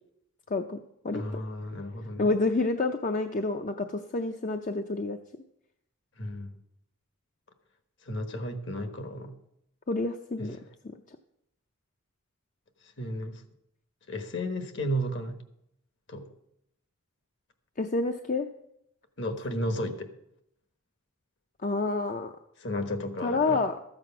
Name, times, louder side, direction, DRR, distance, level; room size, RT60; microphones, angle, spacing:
voice 1, 1.1-2.3 6.2-6.6 8.0-9.3 10.4-10.7 12.8-13.4 14.1-15.4 16.1-16.3 19.2-20.1 22.6-23.6, equal, 55° left, 8 dB, 1.3 m, -33 dB
voice 2, 2.2-5.2 9.9-10.6 17.8-18.5 21.6-22.3 23.2-23.8, left 3 dB, 35° left, 6 dB, 0.5 m, -28 dB
13.5 x 7.7 x 5.9 m, 0.78 s
head